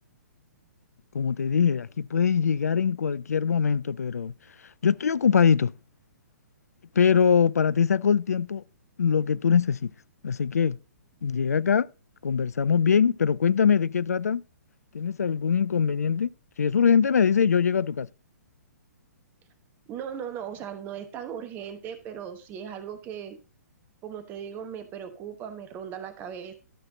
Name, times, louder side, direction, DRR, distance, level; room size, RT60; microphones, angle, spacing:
voice 1, 1.1-4.3 4.8-5.7 7.0-8.6 9.0-9.9 10.2-10.8 11.2-11.9 12.2-14.4 14.9-16.3 16.6-18.1, left 7 dB, 65° left, 0.4 m, -22 dB
voice 2, 19.9-23.4 24.0-26.5, right 8 dB, 20° right, 1.1 m, -38 dB
12.5 x 5.8 x 3.7 m
figure-of-eight pair, 120°, 9 cm